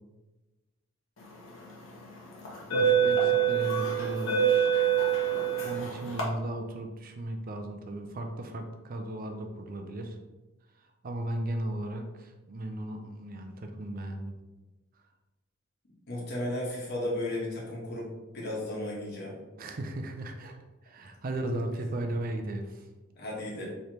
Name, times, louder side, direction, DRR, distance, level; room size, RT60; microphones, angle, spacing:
sound 1, 1.4-1.7 2.4-6.2, right 8 dB, 90° left, 1.1 m, -25 dB
voice 1, 2.7-4.7 5.6-10.2 11.0-14.3 19.6-20.6 20.8-22.8, right 1 dB, 45° right, 4 dB, 0.5 m, -36 dB
voice 2, 16.1-18.1 18.3-19.4 23.2-23.6, left 1 dB, 55° left, -3 dB, 1.3 m, -34 dB
4.6 x 3.2 x 2.9 m, 1.1 s
head